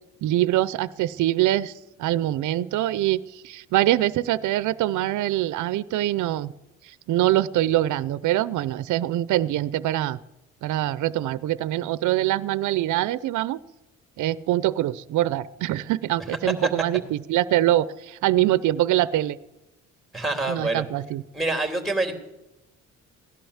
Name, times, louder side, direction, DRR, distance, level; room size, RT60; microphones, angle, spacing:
voice 1, 0.2-1.7 2.0-6.5 6.8-10.2 10.6-13.6 14.2-19.4 20.5-21.2, right 14 dB, 75° right, 17 dB, 0.6 m, -24 dB
voice 2, 20.1-20.8 21.3-22.1, right 2 dB, ahead, 5 dB, 3.1 m, -26 dB
17.0 x 11.5 x 7.2 m, 0.95 s
cardioid pair, 90°, 30 cm